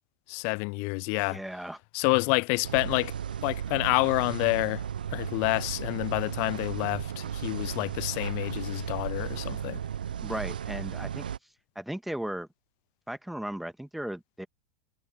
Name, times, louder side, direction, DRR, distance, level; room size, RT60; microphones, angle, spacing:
voice 1, 0.3-1.4 1.9-3.1 3.4-4.8 5.1-9.8, left 39 dB, 50° left, 0.3 m, -28 dB
voice 2, 1.2-1.8 10.2-11.2 11.8-12.5 13.1-14.5, right 1 dB, 5° right, 1.9 m, -36 dB
sound 1, 2.6-11.4, right 8 dB, 75° right, 1.2 m, -35 dB
figure-of-eight pair, 90°, 5 cm